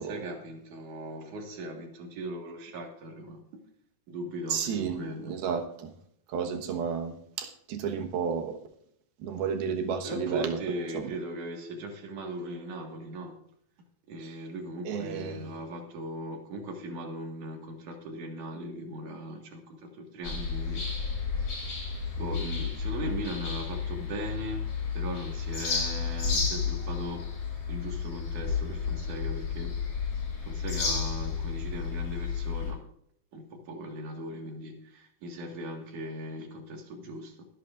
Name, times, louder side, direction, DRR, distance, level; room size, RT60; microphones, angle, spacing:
voice 1, 0.0-3.6 4.1-5.4 10.0-13.3 14.1-20.8 22.2-24.7 24.9-27.3 27.7-29.8 30.4-32.8 33.3-37.5, right 1 dB, 60° right, 3 dB, 3.1 m, -39 dB
voice 2, 4.5-5.9 6.3-8.6 9.2-10.6 10.9-11.1 14.2-14.4 14.8-15.5, right 6 dB, 85° right, 4 dB, 3.3 m, -32 dB
sound 1, 20.2-32.7, left 5 dB, 40° left, 6.2 m, -32 dB
22.0 x 11.0 x 2.5 m, 0.69 s
omnidirectional pair, 4.3 m